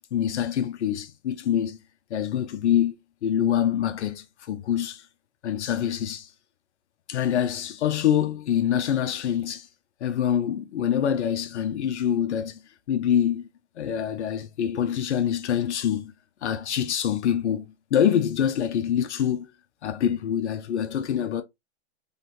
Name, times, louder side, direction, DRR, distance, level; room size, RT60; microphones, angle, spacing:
voice 1, 0.1-1.8 2.1-2.9 3.2-5.1 5.4-6.3 7.1-9.7 10.0-12.6 12.9-13.4 13.8-16.1 16.4-17.7 17.9-19.5 19.8-21.4, left 9 dB, 70° left, 0.7 m, -25 dB
4.0 x 3.1 x 3.0 m
hypercardioid pair, 135°, 35 cm